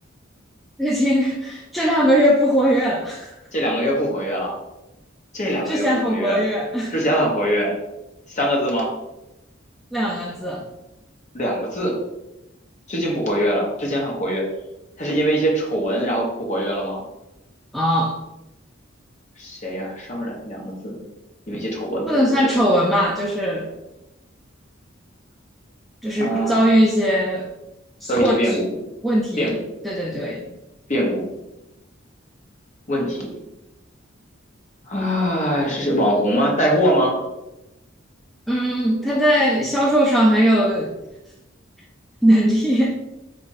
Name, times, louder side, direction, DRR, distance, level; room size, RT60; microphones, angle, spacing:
voice 1, 0.8-3.3 5.7-6.9 9.9-10.6 17.7-18.2 22.1-23.7 26.0-27.5 28.0-28.6 29.0-29.6 29.8-30.4 38.5-40.9 42.2-42.9, equal, ahead, -3 dB, 0.4 m, -19 dB
voice 2, 3.5-4.5 5.3-6.4 6.9-7.8 8.3-8.9 11.3-11.9 12.9-14.4 15.0-17.0 19.4-20.9 21.5-22.5 26.2-26.6 28.1-28.7 29.4-29.6 30.9-31.3 32.9-33.4 34.9-37.1, equal, 40° left, -1 dB, 1.0 m, -22 dB
3.9 x 2.5 x 3.9 m, 0.94 s
head